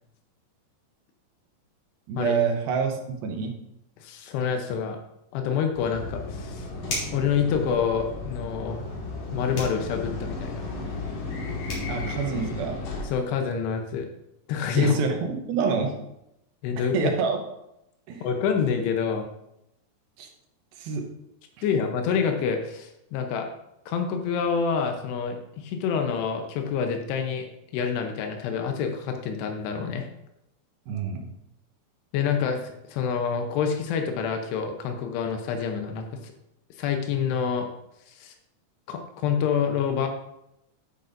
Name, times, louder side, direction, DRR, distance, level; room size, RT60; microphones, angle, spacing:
voice 1, 2.1-3.5 11.9-12.8 14.8-16.0 16.8-17.5 18.1-18.3 20.2-20.3 20.7-21.1 30.9-31.3, right 5 dB, 75° right, 3 dB, 2.6 m, -27 dB
voice 2, 4.0-5.0 5.3-6.7 7.1-8.8 9.3-10.9 13.0-14.1 14.5-15.0 16.6-17.1 18.2-19.3 21.6-23.5 23.9-27.5 27.7-30.1 32.1-36.3 36.8-37.7 38.1-38.3 38.9-40.1, left 6 dB, 85° left, 4 dB, 3.0 m, -27 dB
sound 1, 5.7-13.1, left 3 dB, 60° left, 3.2 m, -34 dB
sound 2, 6.9-7.3 9.5-9.8 11.3-11.4 11.7-11.9, left 1 dB, 40° left, 3.5 m, -32 dB
10.5 x 8.5 x 2.6 m, 0.82 s
omnidirectional pair, 4.7 m